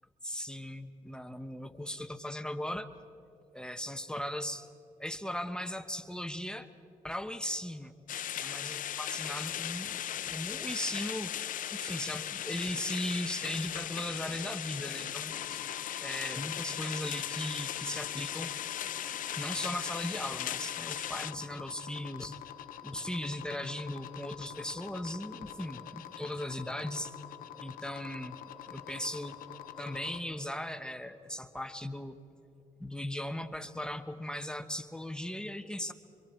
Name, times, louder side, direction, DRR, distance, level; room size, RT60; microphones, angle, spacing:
voice 1, 0.2-2.9 3.5-4.7 5.0-6.7 7.0-7.9 8.3-10.0 10.3-11.3 11.7-15.6 16.0-18.5 19.4-22.4 22.8-27.2 27.6-28.4 28.7-29.4 29.8-32.2 32.8-35.9, left 1 dB, 5° left, 9 dB, 1.1 m, -38 dB
sound 1, 8.1-21.3, left 11 dB, 75° left, 0.5 m, -37 dB
sound 2, 15.1-31.6, equal, 15° right, 7.0 m, -60 dB
sound 3, 15.3-30.2, left 12 dB, 90° left, 0.9 m, -47 dB
25.5 x 24.5 x 4.5 m, 2.6 s
cardioid pair, 75°, 14 cm